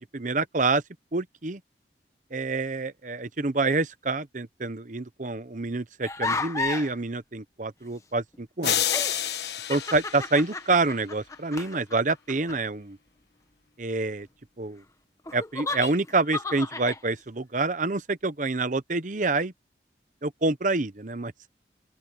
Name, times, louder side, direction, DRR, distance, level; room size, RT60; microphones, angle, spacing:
voice 1, 0.1-0.8 1.1-1.6 2.3-8.8 9.7-13.0 13.8-14.3 14.6-14.8 15.3-19.5 20.2-21.3, right 3 dB, 45° right, 0.9 m, -27 dB
sound 1, 6.0-6.9 8.3-8.4 8.8-12.6 15.3-17.0, left 3 dB, 20° left, 1.4 m, -33 dB
sound 2, 8.6-11.0, left 10 dB, 70° left, 1.2 m, -29 dB
open air
head